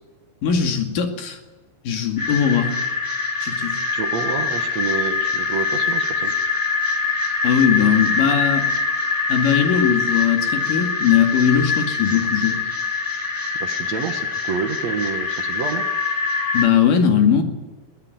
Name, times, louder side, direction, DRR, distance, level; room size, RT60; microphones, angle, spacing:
voice 1, 0.4-1.4 1.9-2.7 3.4-3.8 7.4-8.7 9.3-12.6 16.5-17.4, left 8 dB, 65° left, 5 dB, 3.8 m, -19 dB
sound 1, 2.2-16.7, left 4 dB, 5° left, 1.8 m, -24 dB
voice 2, 3.9-6.4 13.6-15.9, right 6 dB, 55° right, 6 dB, 2.3 m, -28 dB
22.5 x 17.5 x 9.4 m, 1.2 s
omnidirectional pair, 4.3 m